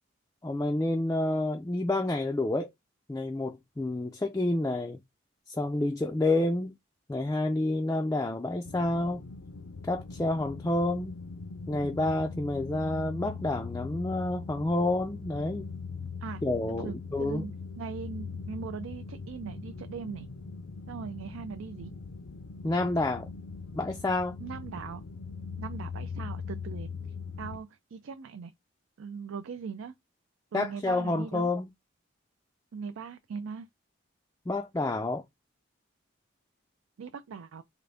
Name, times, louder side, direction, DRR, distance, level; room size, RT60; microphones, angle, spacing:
voice 1, 0.4-2.7 3.1-5.0 5.5-6.7 7.1-9.2 9.9-11.2 11.7-15.7 16.4-17.4 22.6-23.3 23.7-24.4 30.5-31.7 34.5-35.2, left 2 dB, 15° left, 0.3 m, -29 dB
sound 1, 8.6-27.6, left 5 dB, 80° left, 0.6 m, -41 dB
voice 2, 16.7-20.3 20.9-21.9 24.4-25.0 25.6-26.9 27.4-28.5 29.0-29.9 30.5-31.5 32.7-33.7 37.0-37.6, right 6 dB, 85° right, 0.4 m, -40 dB
3.7 x 2.5 x 3.3 m
head